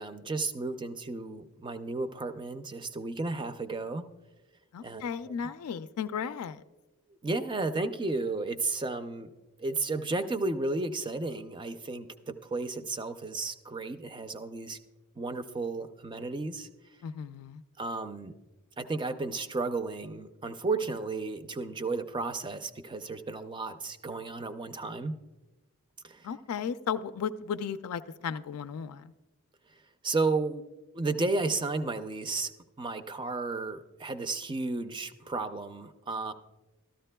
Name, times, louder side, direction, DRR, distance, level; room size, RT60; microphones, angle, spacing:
voice 1, 0.0-4.0 4.8-5.3 7.2-9.3 9.6-14.8 15.2-16.7 17.8-18.3 18.8-25.1 26.0-26.3 30.0-30.6 30.9-32.5 32.8-36.3, right 3 dB, 20° right, 10 dB, 0.4 m, -33 dB
voice 2, 4.7-6.6 17.0-17.6 26.2-29.1, left 7 dB, 85° left, 11 dB, 0.3 m, -35 dB
13.5 x 12.5 x 2.2 m, 1.1 s
head